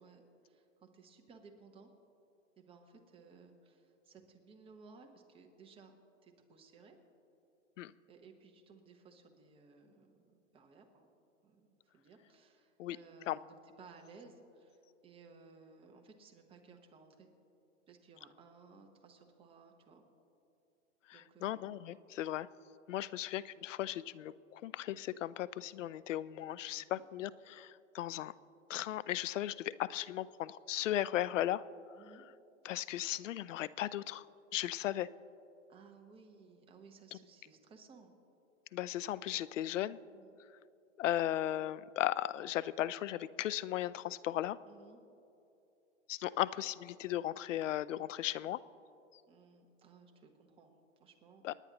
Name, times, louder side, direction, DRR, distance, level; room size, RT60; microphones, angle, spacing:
voice 1, 0.0-1.9 2.6-6.0 6.2-7.0 8.1-11.1 11.4-17.3 17.9-20.0 21.1-21.9 23.1-23.3 26.8-27.0 32.0-32.3 35.7-38.1 40.1-40.4 44.7-45.0 49.3-51.4, right 4 dB, 15° right, 4 dB, 1.0 m, -59 dB
voice 2, 21.1-22.5 22.9-28.3 28.7-31.6 32.6-34.2 34.5-35.1 37.1-37.2 38.7-40.0 41.0-44.6 46.1-48.6 51.4-51.5, left 13 dB, 75° left, 19 dB, 0.5 m, -36 dB
26.5 x 9.8 x 2.9 m, 2.8 s
hypercardioid pair, 135°, 38 cm